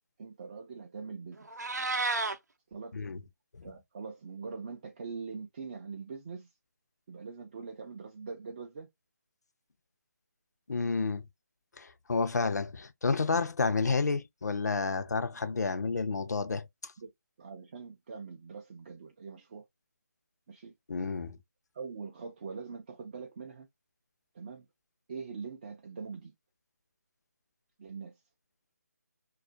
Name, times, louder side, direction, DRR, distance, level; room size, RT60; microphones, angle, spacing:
voice 1, 0.2-1.5 2.7-3.0 3.6-6.5 7.1-8.9 17.0-17.1 17.4-19.7 20.5-20.7 21.7-23.7 24.3-24.7 25.1-26.3 27.8-28.2, right 5 dB, 30° right, 0.3 m, -43 dB
Meow, 1.4-2.4, right 3 dB, 90° right, 0.6 m, -31 dB
voice 2, 10.7-11.2 11.8-16.7 20.9-21.4, left 4 dB, 80° left, 0.5 m, -30 dB
2.3 x 2.1 x 2.6 m
figure-of-eight pair, 155°, 9 cm